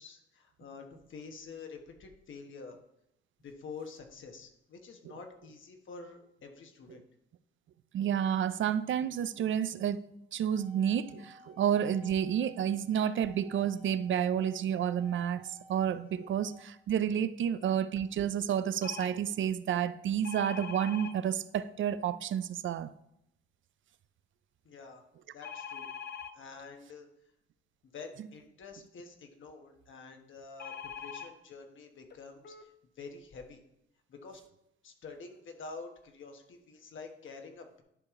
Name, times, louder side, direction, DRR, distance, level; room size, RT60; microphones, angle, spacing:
voice 1, 0.0-2.8 3.4-7.0 24.6-25.0 25.3-25.9 26.3-27.1 27.8-33.6 34.1-34.4 34.8-37.8, left 4 dB, 65° left, 1.2 m, -48 dB
voice 2, 7.9-10.0 10.3-22.9, right 9 dB, 65° right, 0.4 m, -30 dB
sound 1, 10.4-16.6, right 1 dB, 30° right, 0.9 m, -57 dB
sound 2, 18.8-19.1 20.2-21.1 25.4-26.3 30.6-31.3 32.1-32.2 32.4-32.6, left 7 dB, 50° left, 0.6 m, -42 dB
11.0 x 4.9 x 3.6 m
cardioid pair, 120°, 21 cm